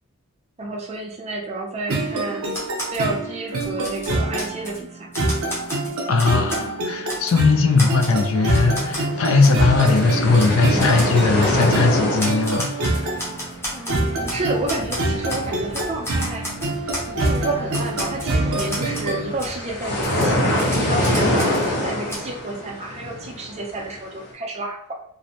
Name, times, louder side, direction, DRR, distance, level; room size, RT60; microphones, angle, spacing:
voice 1, 0.6-2.6 2.9-5.1 13.7-16.5 17.1-24.9, right 2 dB, 30° right, 0 dB, 0.4 m, -30 dB
sound 1, 1.9-19.3, right 2 dB, 75° right, 0.6 m, -26 dB
Typewriter, 2.5-3.1 3.5-4.8 5.1-6.7 7.1-7.4 7.8-9.1 9.4-9.6 9.9-10.0 10.4-10.5 10.8-11.1 11.6-11.8 12.2-14.4 14.7-15.5 15.7-17.4 17.7-19.1 19.4-19.5 20.0-21.7 22.1-22.2, left 1 dB, 10° left, 0.6 m, -32 dB
voice 2, 6.1-13.2, left 4 dB, 70° left, 4 dB, 0.4 m, -19 dB
sound 2, 7.5-24.2, left 1 dB, 85° left, 0.8 m, -26 dB
2.5 x 2.0 x 2.7 m, 0.69 s
head